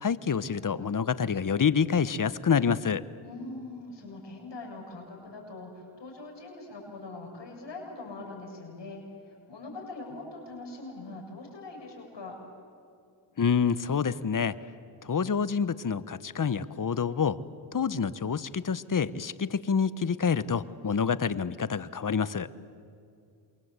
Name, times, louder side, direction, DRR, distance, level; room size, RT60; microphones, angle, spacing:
voice 1, 0.0-3.0 13.4-14.5 15.0-17.4 17.7-22.5, left 6 dB, 40° left, 16 dB, 1.1 m, -27 dB
voice 2, 3.2-12.4, left 2 dB, 65° left, 0 dB, 7.2 m, -42 dB
28.0 x 23.0 x 8.3 m, 2.5 s
cardioid pair, 50°, 46 cm